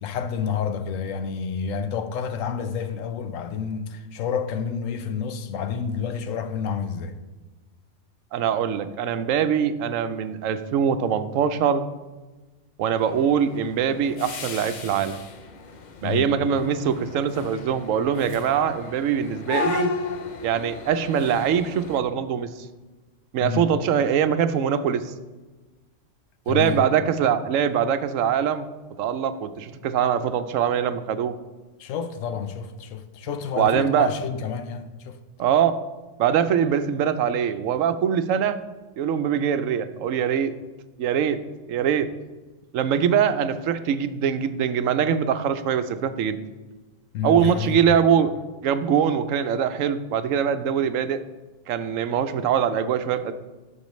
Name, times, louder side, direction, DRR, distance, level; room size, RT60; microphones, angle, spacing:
voice 1, 0.0-7.2 16.0-16.3 23.4-23.6 26.5-26.9 31.8-35.2 47.1-48.0, left 7 dB, 85° left, 1.1 m, -29 dB
voice 2, 8.3-11.8 12.8-15.2 16.0-19.9 20.4-22.7 23.3-25.1 26.5-28.7 29.0-31.3 33.6-34.1 35.4-35.7 36.2-38.6 39.0-40.5 41.0-41.4 41.7-42.1 42.7-46.4 47.2-48.3 48.6-51.2 51.7-53.3, right 8 dB, 85° right, 1.0 m, -23 dB
sound 1, 13.0-22.0, left 5 dB, 45° left, 0.6 m, -35 dB
12.0 x 6.3 x 3.1 m
omnidirectional pair, 1.3 m